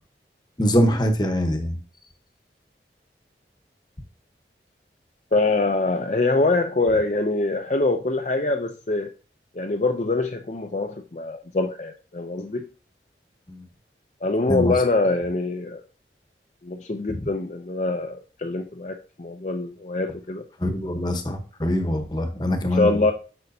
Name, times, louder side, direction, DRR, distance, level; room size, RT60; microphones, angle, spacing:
voice 1, 0.6-1.8 13.5-13.7 14.5-14.7 20.6-22.9, equal, 25° left, 6 dB, 1.0 m, -23 dB
voice 2, 5.3-9.1 9.5-12.6 14.2-15.8 16.6-20.4 22.6-23.1, left 2 dB, 40° left, 5 dB, 0.5 m, -24 dB
8.7 x 6.3 x 2.7 m, 0.37 s
head